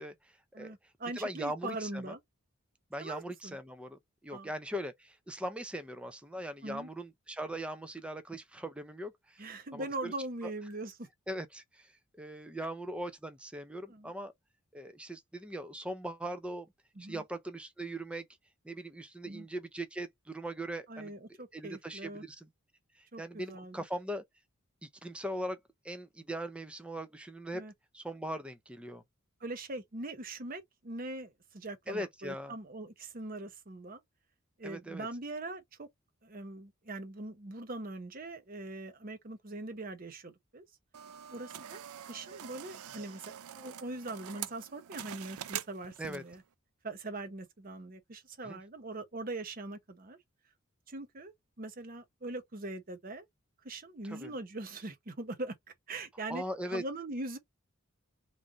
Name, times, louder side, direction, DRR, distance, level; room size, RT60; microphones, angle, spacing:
voice 1, 0.0-0.7 1.2-2.1 2.9-9.4 9.7-10.1 10.4-10.5 11.3-11.9 12.2-14.3 14.7-16.7 17.0-18.3 18.6-21.1 21.5-22.5 23.0-24.2 24.8-25.6 25.8-27.6 27.9-29.0 31.9-32.6 34.6-35.1 46.0-46.2 48.4-48.6 54.0-54.3 56.3-56.8, right 1 dB, 5° right, 0.4 m, -40 dB
voice 2, 0.5-2.2 3.0-3.6 4.3-4.5 6.6-6.9 9.4-11.1 13.9-14.1 17.0-17.2 19.3-19.5 20.9-22.2 23.1-23.8 27.5-27.7 29.4-34.0 34.6-35.9 36.2-40.6 41.3-46.4 46.8-50.2 50.9-53.3 53.6-55.5 55.9-56.4 56.7-57.4, right 2 dB, 40° right, 0.7 m, -42 dB
sound 1, 40.9-46.4, right 10 dB, 90° right, 0.4 m, -44 dB
3.1 x 2.6 x 3.7 m
head